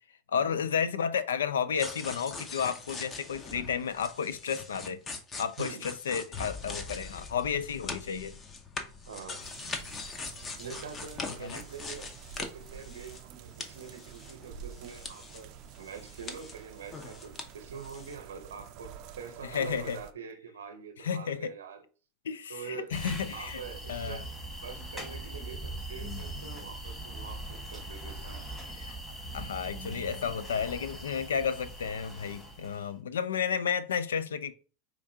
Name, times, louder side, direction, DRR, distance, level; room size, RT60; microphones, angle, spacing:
voice 1, 0.3-5.0 5.4-8.4 11.2-11.6 19.4-20.0 21.0-21.5 22.2-23.6 23.9-24.2 28.7-29.0 29.3-34.5, left 7 dB, 85° left, 0.3 m, -32 dB
sound 1, 1.8-13.3 13.6-15.4 15.7-17.5 17.7-18.1, left 3 dB, 30° left, 0.7 m, -42 dB
voice 2, 9.1-9.5 10.6-12.1 12.4-21.8 22.5-22.9 23.3-24.3 24.6-28.6, right 6 dB, 85° right, 0.7 m, -45 dB
sound 2, 9.4-20.1, right 8 dB, 50° right, 0.4 m, -49 dB
sound 3, 22.9-32.9, right 1 dB, 10° left, 1.4 m, -41 dB
4.6 x 2.4 x 2.7 m
hypercardioid pair, 100°, 0 cm